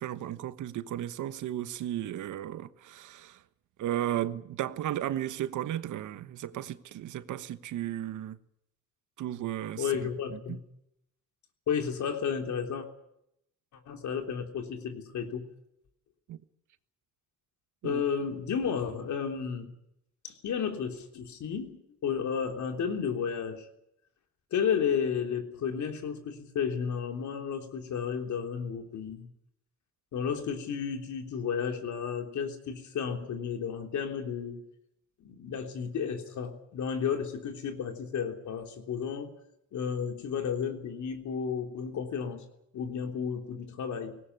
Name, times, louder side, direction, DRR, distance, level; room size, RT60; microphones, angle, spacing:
voice 1, 0.0-3.4 3.8-8.4 9.2-9.9 10.3-10.6 16.3-16.4 17.8-18.0, right 12 dB, 75° right, 1.2 m, -34 dB
voice 2, 9.8-10.6 11.7-12.9 13.9-15.5 17.8-19.7 20.2-23.7 24.5-29.3 30.1-34.7 35.2-39.3 39.7-42.4 42.7-44.2, left 7 dB, 70° left, 3.5 m, -32 dB
18.5 x 18.0 x 9.7 m
cardioid pair, 90°, 30 cm